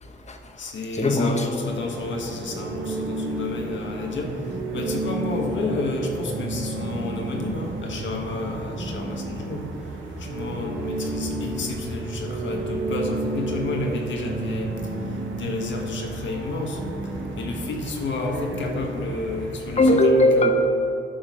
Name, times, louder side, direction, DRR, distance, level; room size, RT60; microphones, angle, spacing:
voice 1, 0.0-1.5 19.8-20.5, left 1 dB, 35° left, 5 dB, 0.9 m, -20 dB
voice 2, 0.6-4.4 4.7-9.7 10.2-14.8 15.4-16.8 17.4-20.5, left 2 dB, 75° left, 1 dB, 1.3 m, -30 dB
sound 1, 1.6-19.8, right 1 dB, 85° right, 1.3 m, -37 dB
sound 2, 2.5-18.8, right 2 dB, 60° right, 1.3 m, -32 dB
11.0 x 4.0 x 6.2 m, 2.9 s
cardioid pair, 85°, 19 cm